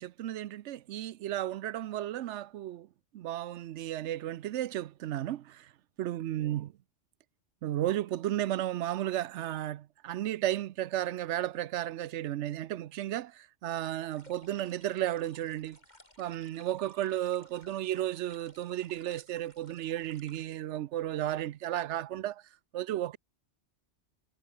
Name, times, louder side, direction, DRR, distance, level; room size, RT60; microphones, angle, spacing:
voice 1, 0.0-2.9 3.1-5.7 6.0-6.7 7.6-15.8 16.2-22.4 22.7-23.2, right 13 dB, 70° right, 0.9 m, -34 dB
sound 1, 14.1-20.5, left 1 dB, 35° left, 7.3 m, -59 dB
omnidirectional pair, 1.3 m